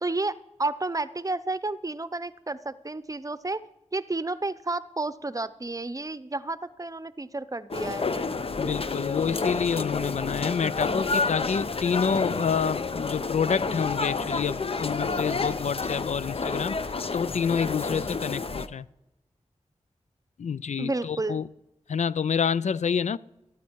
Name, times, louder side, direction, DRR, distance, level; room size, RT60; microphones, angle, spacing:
voice 1, 0.0-3.6 3.9-8.3 20.8-21.4, right 2 dB, 30° right, 0.7 m, -31 dB
sound 1, 7.7-18.7, left 4 dB, 50° left, 0.8 m, -29 dB
voice 2, 8.6-16.8 17.1-18.8 20.4-21.4 21.9-23.2, left 6 dB, 70° left, 0.4 m, -28 dB
14.0 x 12.5 x 4.6 m
cardioid pair, 55°, 12 cm